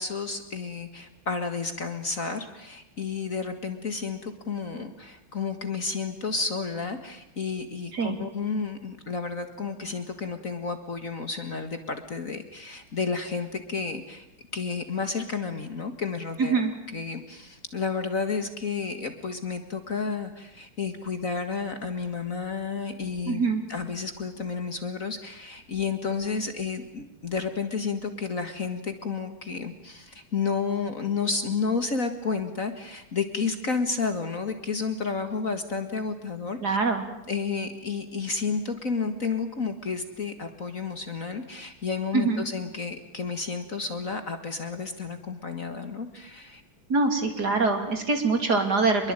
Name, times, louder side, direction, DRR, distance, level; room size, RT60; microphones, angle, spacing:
voice 1, 0.0-14.3 14.5-16.6 16.9-36.8 37.3-46.6, left 5 dB, 40° left, 8 dB, 2.0 m, -31 dB
voice 2, 16.4-16.7 23.3-23.6 36.6-37.0 42.1-42.4 46.9-49.1, right 4 dB, 50° right, 6 dB, 3.6 m, -24 dB
25.5 x 22.0 x 9.0 m, 0.82 s
omnidirectional pair, 2.3 m